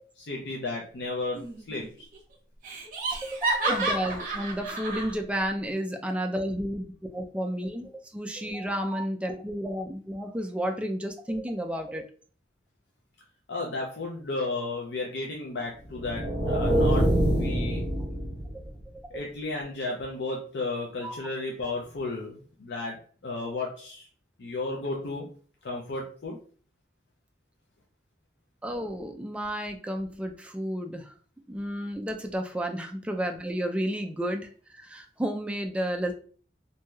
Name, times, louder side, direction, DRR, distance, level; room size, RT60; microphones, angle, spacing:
voice 1, 0.2-2.1 13.5-17.8 19.1-24.1 24.4-25.3 25.6-26.4, left 3 dB, 70° left, -1 dB, 0.5 m, -34 dB
Laughter, 1.3-1.9 2.1-2.2 2.6-5.1, right 2 dB, 50° right, 1.0 m, -30 dB
voice 2, 3.3-12.0 21.0-21.1 28.6-31.2 31.5-36.1, equal, 5° right, 4 dB, 0.3 m, -32 dB
sound 1, 15.9-18.8, right 1 dB, 25° left, 0.9 m, -25 dB
3.1 x 2.6 x 2.3 m, 0.43 s
head